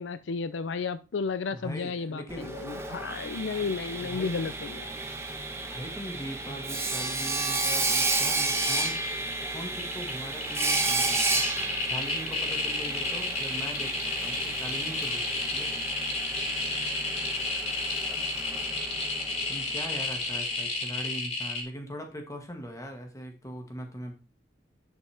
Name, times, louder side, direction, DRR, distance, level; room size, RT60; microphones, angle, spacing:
voice 1, 0.0-4.9, left 5 dB, 80° left, 13 dB, 0.5 m, -33 dB
voice 2, 1.5-2.7 3.5-3.7 4.0-4.4 5.7-9.0 9.5-15.7 19.5-24.1, equal, 20° left, 3 dB, 1.8 m, -41 dB
Sawing, 2.3-20.1, right 3 dB, 15° right, 1.1 m, -32 dB
sound 1, 8.8-9.3 9.7-21.6, left 3 dB, 35° left, 3.3 m, -31 dB
11.0 x 6.0 x 3.4 m, 0.32 s
head